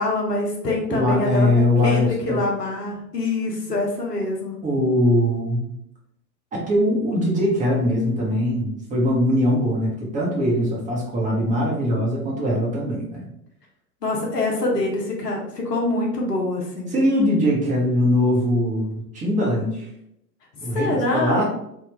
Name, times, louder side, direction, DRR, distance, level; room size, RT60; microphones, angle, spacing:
voice 1, 0.0-4.6 14.0-16.9 20.7-21.4, left 2 dB, 80° left, -1 dB, 1.1 m, -25 dB
voice 2, 0.9-2.4 4.6-5.7 6.5-13.3 16.9-19.9 20.6-21.4, left 1 dB, 15° right, -4 dB, 0.9 m, -21 dB
3.5 x 2.4 x 3.2 m, 0.77 s
figure-of-eight pair, 100°, 48 cm